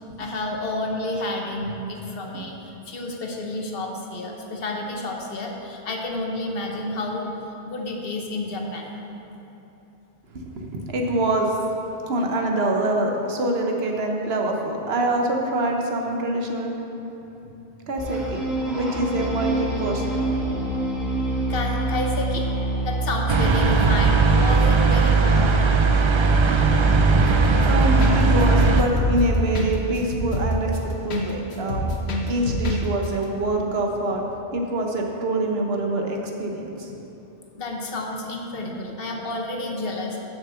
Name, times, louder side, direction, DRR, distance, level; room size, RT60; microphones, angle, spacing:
voice 1, 0.2-7.3 7.6-8.9 21.5-22.5 22.8-25.6 37.6-40.2, left 2 dB, 65° left, 1 dB, 1.2 m, -30 dB
voice 2, 10.5-11.5 12.1-16.7 17.9-18.4 18.7-20.9 27.7-30.7 31.0-31.9 32.2-34.2 34.5-36.9, right 1 dB, 75° right, 1 dB, 1.2 m, -25 dB
sound 1, 18.0-24.5, right 2 dB, ahead, 1.9 m, -26 dB
sound 2, 23.3-28.8, right 3 dB, 50° right, 0.3 m, -18 dB
sound 3, 27.2-27.7 28.0-28.1 28.4-31.2 31.5-32.8 33.0-33.1, left 1 dB, 85° left, 1.3 m, -26 dB
7.2 x 6.0 x 6.9 m, 3.0 s
omnidirectional pair, 1.1 m